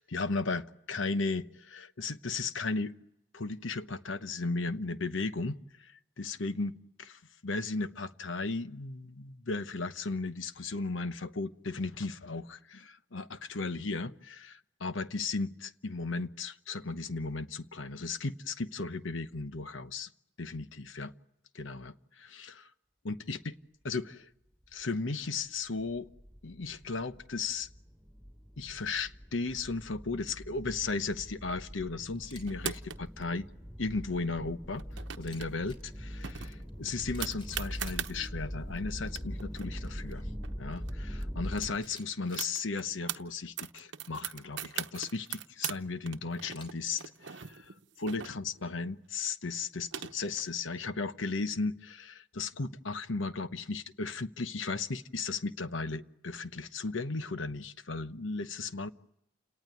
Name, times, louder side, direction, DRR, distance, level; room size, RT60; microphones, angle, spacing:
voice 1, 0.0-2.9 3.3-20.1 20.4-21.1 21.5-22.7 23.0-23.5 23.8-24.3 24.7-26.1 26.4-27.7 28.6-33.5 33.8-34.8 35.2-40.2 40.6-47.7 48.0-58.9, left 3 dB, 80° left, 1.0 m, -35 dB
sound 1, 24.8-24.9 25.4-25.5 25.8-41.7, equal, ahead, 5.2 m, -42 dB
Camera, 32.2-32.4 32.7-32.8 35.1-35.8 36.7-36.8 37.1-38.3 41.5-42.4 46.4-47.0, left 2 dB, 25° left, 3.3 m, -53 dB
sound 2, 32.5-33.2 34.7-35.5 35.8-35.9 36.2-38.1 38.8-38.9 39.1-40.9 41.2-41.3 41.6-43.2 43.6-45.8 46.1-48.7 49.5-50.4, right 9 dB, 70° right, 0.9 m, -40 dB
29.5 x 18.5 x 9.7 m
head